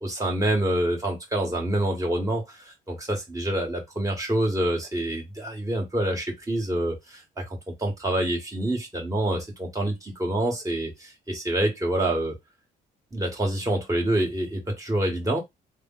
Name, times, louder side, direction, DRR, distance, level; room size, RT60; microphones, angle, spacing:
voice 1, 0.0-2.6 2.9-7.4 7.8-12.3 13.1-15.4, right 1 dB, 15° right, 1.4 m, -26 dB
3.3 x 2.1 x 3.7 m
cardioid pair, 90°, 20 cm